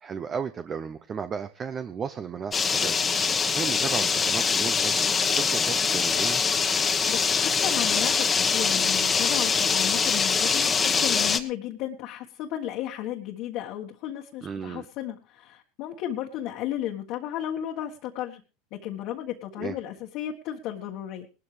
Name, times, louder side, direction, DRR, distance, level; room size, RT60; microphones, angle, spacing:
voice 1, 0.0-3.1 3.5-6.4 14.4-14.9 19.6-19.8, right 6 dB, 30° right, 10 dB, 0.9 m, -34 dB
sound 1, 2.5-11.4, left 5 dB, 20° left, 1.4 m, -23 dB
voice 2, 6.8-18.4 18.7-21.3, left 12 dB, 55° left, 0 dB, 1.7 m, -34 dB
18.5 x 13.0 x 3.4 m, 0.34 s
supercardioid pair, 115°, 0 cm